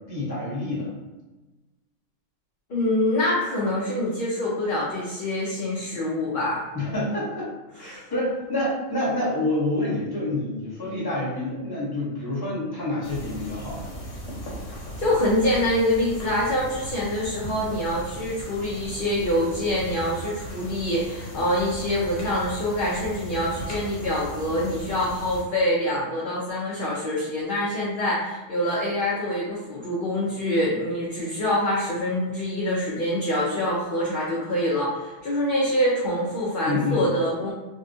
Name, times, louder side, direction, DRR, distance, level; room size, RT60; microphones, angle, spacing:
voice 1, 0.1-0.9 6.7-7.5 7.8-13.9 36.6-37.1, left 1 dB, 20° left, -7 dB, 1.0 m, -27 dB
voice 2, 2.7-6.6 7.9-8.0 15.0-37.5, left 1 dB, 50° left, -6 dB, 0.7 m, -25 dB
sound 1, 13.0-25.4, equal, 85° left, 1.2 m, -37 dB
3.6 x 2.2 x 2.6 m, 1.1 s
omnidirectional pair, 1.3 m